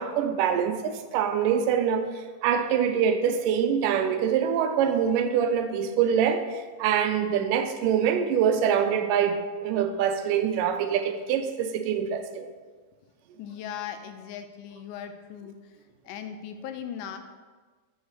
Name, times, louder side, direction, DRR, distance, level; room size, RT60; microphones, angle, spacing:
voice 1, 0.0-2.1 2.4-12.5, right 8 dB, 85° right, 8 dB, 2.2 m, -25 dB
voice 2, 13.4-15.6 16.1-17.2, left 9 dB, 80° left, 8 dB, 2.1 m, -38 dB
8.1 x 3.1 x 6.4 m, 1.4 s
omnidirectional pair, 3.7 m